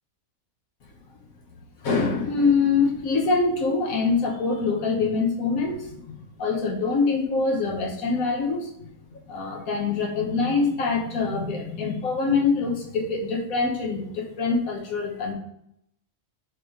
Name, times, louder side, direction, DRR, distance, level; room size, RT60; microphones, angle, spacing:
voice 1, 1.8-8.7 9.1-15.3, left 4 dB, 90° left, 1 dB, 1.6 m, -24 dB
6.7 x 3.2 x 5.1 m, 0.75 s
omnidirectional pair, 1.4 m